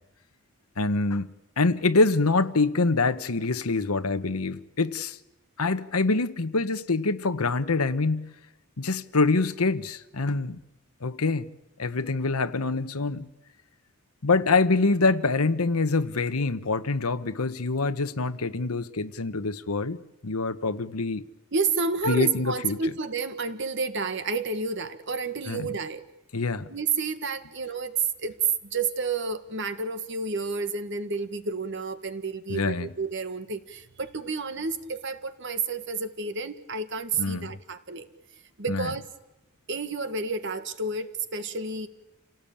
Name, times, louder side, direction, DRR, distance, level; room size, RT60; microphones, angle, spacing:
voice 1, 0.8-1.3 1.6-5.2 5.6-8.3 8.8-10.6 11.0-11.5 11.8-13.3 14.2-20.0 20.2-21.2 22.1-22.8 25.5-25.7 26.3-26.7 32.5-32.9 37.2-37.5 38.7-38.9, left 3 dB, 90° left, 1.1 m, -25 dB
voice 2, 21.5-26.1 26.7-28.4 28.6-38.1 38.6-39.1 39.7-41.9, right 4 dB, 55° right, 1.7 m, -30 dB
28.5 x 18.0 x 8.7 m
head